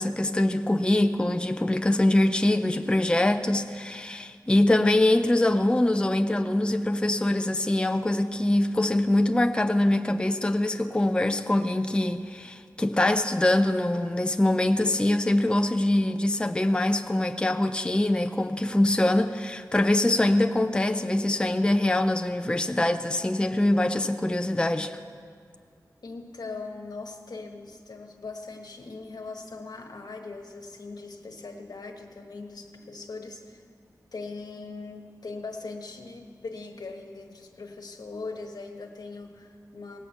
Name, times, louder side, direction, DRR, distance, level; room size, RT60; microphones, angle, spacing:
voice 1, 0.0-25.0, left 1 dB, 15° left, 7 dB, 0.4 m, -24 dB
voice 2, 26.0-33.6 34.1-40.0, left 3 dB, 80° left, 4 dB, 1.2 m, -40 dB
18.0 x 6.0 x 7.9 m, 2.1 s
wide cardioid pair, 90°, 7 cm